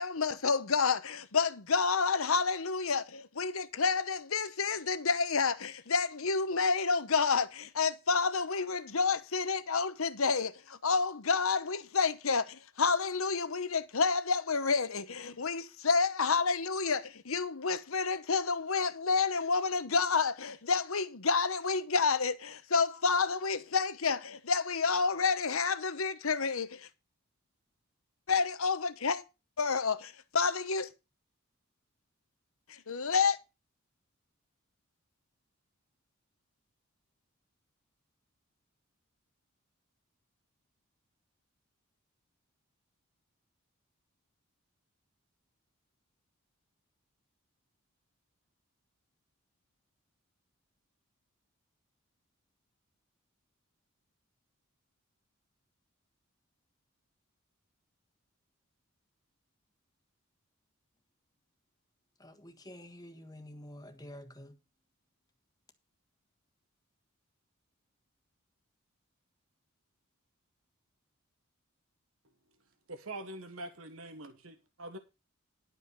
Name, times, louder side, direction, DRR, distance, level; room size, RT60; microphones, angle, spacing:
voice 1, 0.0-26.9 28.3-29.2 29.6-30.9 32.7-33.4, left 5 dB, 75° left, 1.0 m, -29 dB
voice 2, 62.2-64.6, left 1 dB, 20° left, 1.4 m, -49 dB
voice 3, 72.9-75.0, right 1 dB, 70° right, 1.3 m, -44 dB
11.5 x 5.5 x 6.6 m
head